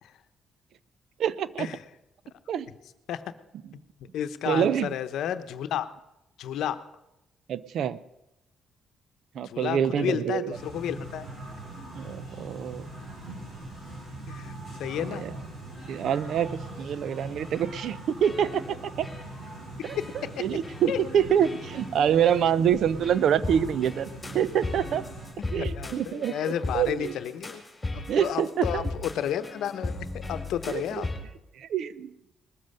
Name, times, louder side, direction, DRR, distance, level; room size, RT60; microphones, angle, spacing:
voice 1, 1.2-1.7 2.5-2.7 4.5-4.9 7.5-8.0 9.3-10.6 11.9-12.9 15.0-15.3 15.9-19.1 19.8-24.1 24.3-25.1 25.5-26.4 26.7-27.1 28.1-28.9 30.7-31.0 31.5-32.1, right 9 dB, 70° right, 17 dB, 0.6 m, -26 dB
voice 2, 4.1-5.9 6.4-6.8 9.4-11.3 14.3-15.2 19.9-20.0 20.9-21.0 25.4-27.6 27.9-31.1, left 10 dB, 80° left, 11 dB, 0.8 m, -32 dB
sound 1, 10.5-25.3, right 2 dB, 50° right, 6.0 m, -41 dB
sound 2, 17.5-17.9 18.2-18.8 19.0-19.5 19.8-20.3 20.6-20.9 21.4-21.9 22.2-22.5 23.0-31.2, left 2 dB, 15° left, 3.7 m, -37 dB
20.0 x 7.5 x 6.6 m, 0.90 s
cardioid pair, 90°, 0 cm